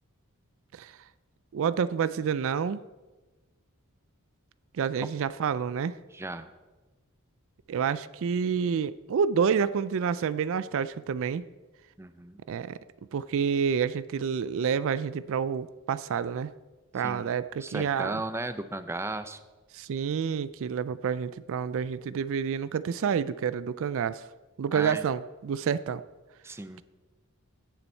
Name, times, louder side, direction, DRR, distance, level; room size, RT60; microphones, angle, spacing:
voice 1, 1.5-2.8 4.7-6.0 7.7-11.4 12.5-12.8 13.1-16.5 16.9-18.2 19.7-24.2 24.6-26.0, right 7 dB, 65° right, 16 dB, 0.4 m, -28 dB
voice 2, 6.1-6.5 12.0-12.4 17.0-19.4 24.7-25.0 26.4-26.8, right 2 dB, 10° right, 11 dB, 0.5 m, -36 dB
16.5 x 7.0 x 4.4 m, 1.2 s
head